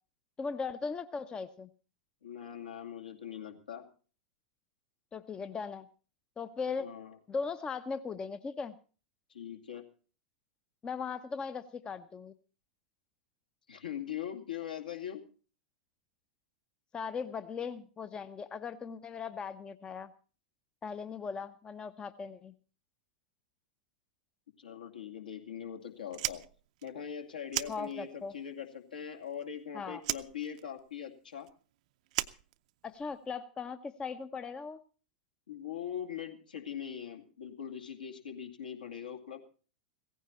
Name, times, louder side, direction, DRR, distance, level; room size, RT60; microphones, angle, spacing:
voice 1, 0.4-1.7 5.1-5.9 6.4-6.9 7.3-8.7 10.8-12.3 16.9-20.1 20.8-22.5 27.7-28.3 29.7-30.0 32.8-34.8, left 5 dB, 15° left, 12 dB, 0.7 m, -38 dB
voice 2, 2.2-3.8 6.8-7.2 9.3-9.8 13.7-15.2 24.6-26.4 26.8-31.5 35.5-39.4, left 8 dB, 70° left, 4 dB, 2.4 m, -41 dB
Fire, 26.1-28.4 28.6-29.6 30.0-33.2, right 16 dB, 50° right, 0.6 m, -38 dB
16.5 x 15.0 x 4.3 m, 0.39 s
figure-of-eight pair, 95°, 5 cm